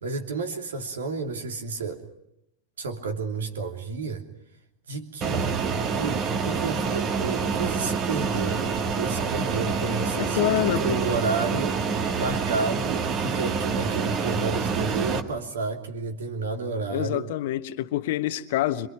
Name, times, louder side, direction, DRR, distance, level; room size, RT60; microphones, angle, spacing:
voice 1, 0.0-2.0 2.8-4.2 4.9-5.7 5.9-11.8 12.1-17.3, right 4 dB, 65° right, 3.0 m, -31 dB
Fixed-wing aircraft airplane, 5.2-15.2, right 5 dB, 35° right, 2.1 m, -27 dB
voice 2, 10.2-11.0 16.9-18.9, left 14 dB, 50° left, 1.2 m, -26 dB
26.5 x 24.5 x 6.0 m
figure-of-eight pair, 90°, 0 cm